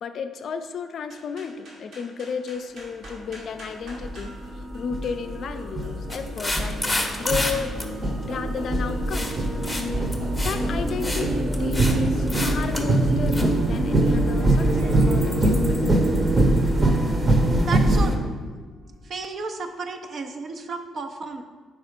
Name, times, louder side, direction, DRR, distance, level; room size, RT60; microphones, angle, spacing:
voice 1, 0.0-7.7 8.2-9.4 10.4-11.3 11.6-15.8, left 6 dB, 60° left, 8 dB, 0.4 m, -33 dB
sound 1, 1.0-20.5, right 1 dB, 75° right, 1.8 m, -46 dB
sound 2, 3.0-3.1 3.9-18.1, right 1 dB, 30° right, 0.9 m, -23 dB
sound 3, 6.1-7.5 7.8-7.9 9.1-9.4 9.6-9.8 10.1-10.6 10.9-11.3 11.5-11.9 12.3-12.8 13.3-13.4, left 1 dB, 5° left, 0.8 m, -29 dB
voice 2, 17.6-18.3 19.0-21.4, right 4 dB, 50° right, 6 dB, 0.6 m, -33 dB
4.8 x 4.1 x 5.1 m, 1.4 s
cardioid pair, 90°, 0 cm